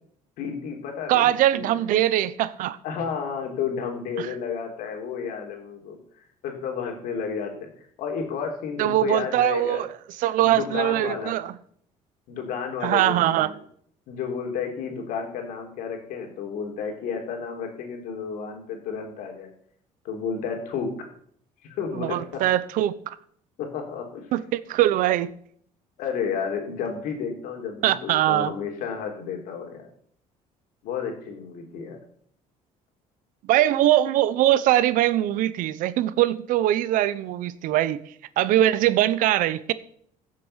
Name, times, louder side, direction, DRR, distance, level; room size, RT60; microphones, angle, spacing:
voice 1, 0.4-1.7 2.8-9.8 10.4-11.4 12.3-13.6 14.1-19.5 20.0-21.1 21.6-22.4 23.6-24.3 26.0-29.9 30.8-32.0, left 6 dB, 80° left, 3.5 m, -32 dB
voice 2, 1.1-2.8 4.2-4.3 8.8-9.9 10.2-11.5 12.8-13.5 21.9-23.2 24.3-25.3 27.8-28.5 33.5-38.0 38.4-39.7, right 13 dB, 75° right, 0.8 m, -22 dB
15.5 x 7.6 x 5.8 m
cardioid pair, 110°, 14 cm